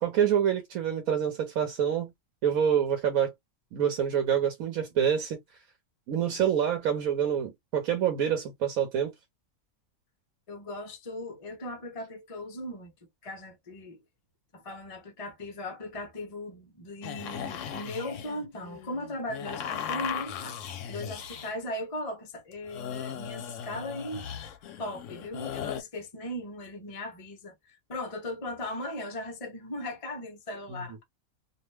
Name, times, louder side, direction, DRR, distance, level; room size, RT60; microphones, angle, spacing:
voice 1, 0.0-2.1 2.4-3.3 3.7-5.4 6.1-9.1, right 8 dB, 80° right, 1.2 m, -26 dB
voice 2, 10.5-12.9 13.2-14.0 14.5-24.3 24.6-31.0, left 1 dB, 35° left, 0.6 m, -38 dB
sound 1, 17.0-21.5 22.5-25.8, left 9 dB, 70° left, 0.9 m, -37 dB
2.7 x 2.1 x 3.1 m
omnidirectional pair, 1.4 m